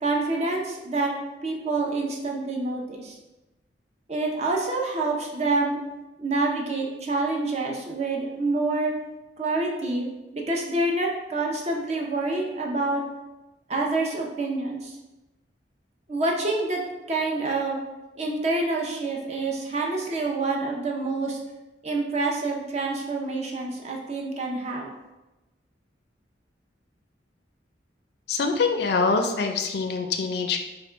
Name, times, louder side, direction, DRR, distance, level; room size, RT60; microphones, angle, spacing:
voice 1, 0.0-1.1 1.4-3.2 4.1-5.8 6.2-8.9 9.4-10.1 10.3-13.0 13.7-14.9 16.1-16.8 17.1-17.8 18.2-21.4 21.8-24.9, right 2 dB, 40° right, -1 dB, 0.6 m, -27 dB
voice 2, 28.3-30.6, left 4 dB, 60° left, 5 dB, 0.4 m, -24 dB
3.5 x 2.2 x 4.4 m, 1.0 s
head